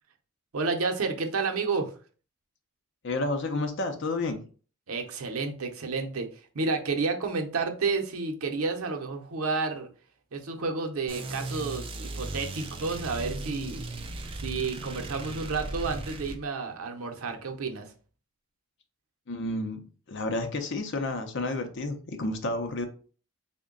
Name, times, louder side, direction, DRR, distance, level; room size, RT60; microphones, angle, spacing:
voice 1, 0.5-1.9 4.9-6.3 6.5-9.9 10.3-13.9 14.4-17.9, right 4 dB, 80° right, 0.6 m, -30 dB
voice 2, 3.0-4.4 19.3-19.8 20.1-22.9, left 2 dB, 55° left, 0.6 m, -30 dB
sound 1, 11.1-16.4, right 2 dB, 25° right, 0.3 m, -37 dB
3.6 x 2.2 x 3.7 m
head